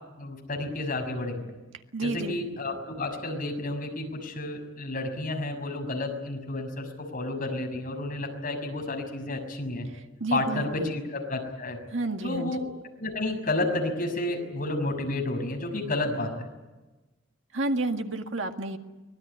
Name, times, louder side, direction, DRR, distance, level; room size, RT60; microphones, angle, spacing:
voice 1, 0.2-1.5 2.0-9.9 10.3-11.8 12.2-12.7 13.0-16.5, left 2 dB, 45° left, 3 dB, 6.3 m, -31 dB
voice 2, 1.9-2.4 10.2-11.0 11.9-12.5 17.5-18.8, right 2 dB, 70° right, 5 dB, 1.9 m, -30 dB
24.5 x 20.0 x 9.6 m, 1.1 s
head